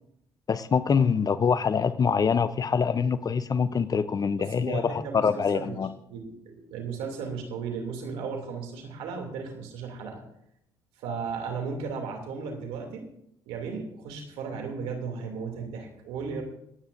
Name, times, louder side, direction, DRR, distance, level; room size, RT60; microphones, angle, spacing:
voice 1, 0.5-5.9, left 6 dB, 40° left, 13 dB, 0.6 m, -25 dB
voice 2, 4.4-5.8 6.1-10.2 11.0-13.1 13.5-16.4, right 5 dB, 85° right, 2 dB, 2.6 m, -35 dB
27.5 x 9.3 x 2.6 m, 0.75 s
supercardioid pair, 60°, 10 cm